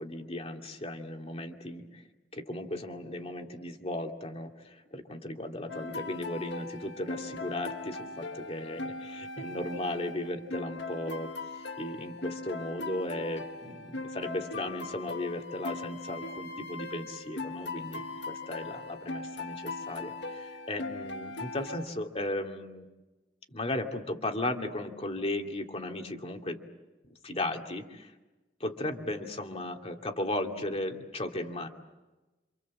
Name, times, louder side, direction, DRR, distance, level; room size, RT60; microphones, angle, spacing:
voice 1, 0.0-2.0 2.3-11.3 11.7-22.9 23.5-26.6 27.2-28.1 28.6-31.7, left 1 dB, 35° left, 3 dB, 2.4 m, -36 dB
sound 1, 5.7-21.9, left 3 dB, 85° left, 1.7 m, -40 dB
28.0 x 26.5 x 7.5 m, 1.1 s
head